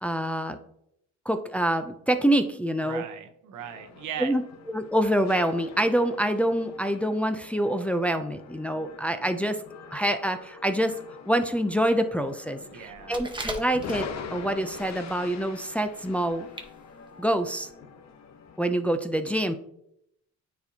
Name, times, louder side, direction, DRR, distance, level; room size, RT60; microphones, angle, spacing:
voice 1, 0.0-0.6 1.3-3.0 4.2-4.4 4.7-9.6 9.9-11.0 11.3-16.5 17.2-17.7 18.6-19.5, right 1 dB, 5° left, 7 dB, 0.4 m, -26 dB
voice 2, 2.8-4.3 12.7-13.1, right 9 dB, 80° right, 7 dB, 0.9 m, -38 dB
sound 1, 3.6-18.6, left 6 dB, 60° left, 0.8 m, -44 dB
sound 2, 12.9-14.3 14.7-15.2 15.5-15.6 16.2-16.3 16.5-16.7 17.1-17.2 17.6-17.7, right 2 dB, 15° right, 0.9 m, -38 dB
9.3 x 4.3 x 2.7 m, 0.77 s
cardioid pair, 90°, 30 cm